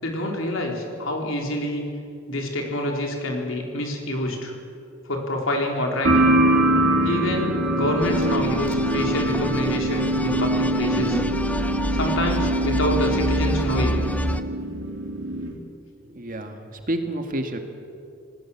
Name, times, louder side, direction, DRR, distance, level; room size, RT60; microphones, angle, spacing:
voice 1, 0.0-1.8 2.3-4.5 5.1-6.3 7.0-11.2 11.9-14.0, left 1 dB, 70° left, 1 dB, 4.4 m, -27 dB
sound 1, 6.0-15.5, right 1 dB, 65° right, 3.2 m, -23 dB
sound 2, 8.0-14.4, left 1 dB, 5° left, 0.9 m, -28 dB
voice 2, 16.1-17.6, right 1 dB, 45° right, 5 dB, 2.0 m, -29 dB
27.0 x 19.0 x 7.4 m, 2.5 s
head